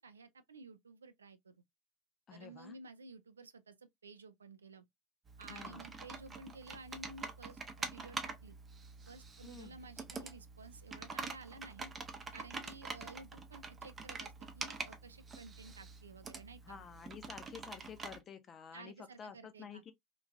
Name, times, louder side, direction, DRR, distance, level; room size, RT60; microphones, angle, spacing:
voice 1, 0.0-1.6 2.3-4.8 5.4-8.6 9.1-11.9 12.3-16.8 18.7-19.8, right 3 dB, 75° right, 0.3 m, -53 dB
voice 2, 2.3-2.8 5.5-5.9 9.4-9.8 16.7-19.9, left 7 dB, 30° left, 0.6 m, -51 dB
Computer keyboard, 5.3-18.2, right 4 dB, 25° right, 0.6 m, -46 dB
3.0 x 2.5 x 2.5 m
figure-of-eight pair, 75°, 0 cm